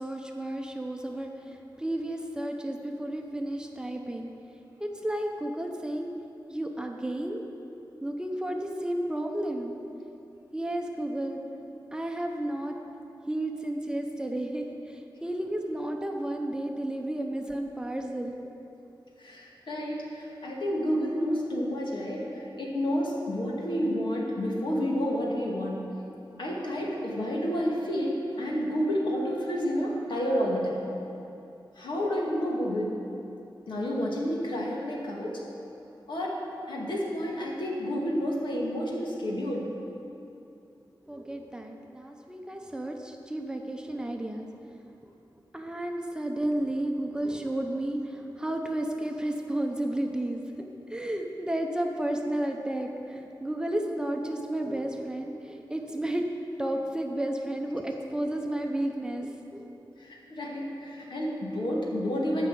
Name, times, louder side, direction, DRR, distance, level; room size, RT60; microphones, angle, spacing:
voice 1, 0.0-4.3 4.8-6.1 6.5-7.4 8.0-9.8 10.5-11.4 11.9-12.8 13.3-18.3 41.1-44.5 45.0-45.1 45.5-56.2 56.6-59.8, right 1 dB, 10° right, 2 dB, 0.8 m, -32 dB
voice 2, 19.2-25.9 26.4-30.8 31.8-32.9 33.7-35.4 36.1-39.7 60.0-62.5, equal, 75° left, -3 dB, 2.0 m, -30 dB
13.0 x 5.6 x 7.8 m, 2.8 s
wide cardioid pair, 135°, 8 cm